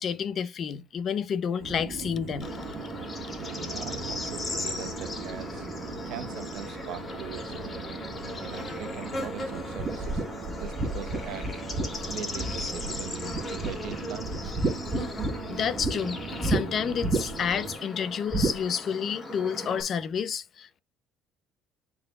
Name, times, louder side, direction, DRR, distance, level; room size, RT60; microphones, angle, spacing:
voice 1, 0.0-2.5 14.9-15.1 15.5-20.8, left 7 dB, 45° left, 0.8 m, -30 dB
sound 1, 1.6-17.8, right 5 dB, 55° right, 1.8 m, -40 dB
Bird / Insect, 2.4-19.8, left 2 dB, 25° left, 2.7 m, -37 dB
voice 2, 3.4-5.7 6.1-7.7 8.4-10.2 10.5-11.5 12.1-13.2 13.5-14.4, right 8 dB, 75° right, 1.0 m, -41 dB
sound 2, 9.8-13.0 13.3-13.9 14.2-15.9 16.4-16.6 17.0-17.5 18.3-18.6, right 2 dB, 30° right, 1.6 m, -29 dB
10.5 x 4.1 x 2.4 m
cardioid pair, 115°, 0 cm